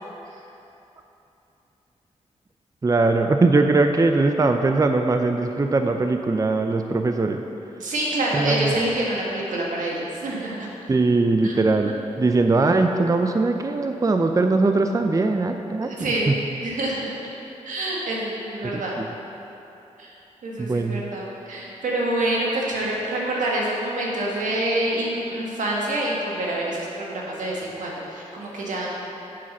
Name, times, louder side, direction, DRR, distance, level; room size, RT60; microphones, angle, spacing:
voice 1, 2.8-7.4 8.3-8.7 10.9-11.9 12.2-16.4 18.7-19.1 20.6-21.0, right 3 dB, 25° right, 5 dB, 0.5 m, -21 dB
voice 2, 7.8-10.7 11.4-11.5 11.8-11.9 15.8-16.3 16.6-17.1 17.6-19.0 20.0-20.1 20.4-28.9, right 1 dB, 80° right, -3 dB, 1.6 m, -27 dB
7.4 x 5.7 x 6.0 m, 3.0 s
cardioid pair, 50°, 13 cm